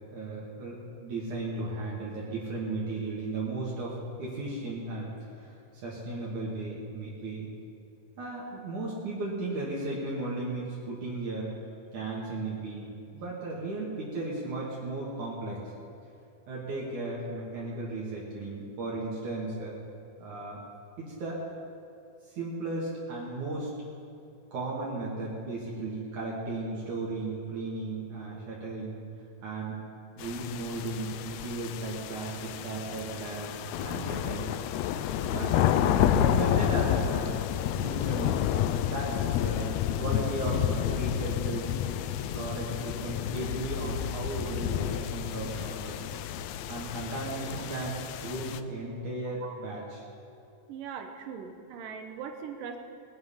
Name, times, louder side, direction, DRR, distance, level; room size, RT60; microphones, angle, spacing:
voice 1, 0.1-5.1 5.4-5.5 5.8-7.5 8.2-11.5 11.9-15.7 16.5-19.8 20.2-20.6 21.0-21.4 22.3-23.7 24.5-29.0 29.4-29.8 30.2-34.4 34.9-37.4 37.8-39.7 40.0-41.7 42.3-46.0 46.7-50.0, right 2 dB, 65° right, -6 dB, 3.7 m, -35 dB
sound 1, 30.2-48.6, left 10 dB, 85° left, 1.6 m, -30 dB
voice 2, 50.7-52.8, right 6 dB, 85° right, 6 dB, 2.8 m, -40 dB
20.5 x 9.7 x 5.6 m, 2.7 s
omnidirectional pair, 3.7 m